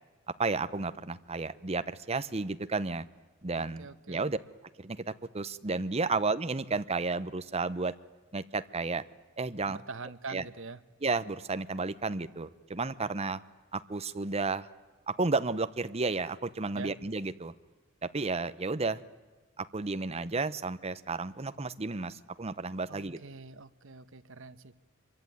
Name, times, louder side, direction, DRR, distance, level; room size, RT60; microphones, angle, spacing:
voice 1, 0.4-3.1 3.4-4.4 4.8-5.0 5.3-7.9 8.3-9.0 9.4-9.8 10.3-10.4 11.0-13.4 13.7-14.7 15.1-17.5 18.0-19.0 19.6-23.2, right 3 dB, 30° right, 12 dB, 0.9 m, -32 dB
voice 2, 3.5-4.3 9.7-10.8 16.7-16.9 22.9-24.7, right 4 dB, 65° right, 13 dB, 1.2 m, -44 dB
25.5 x 23.5 x 9.4 m, 1.2 s
head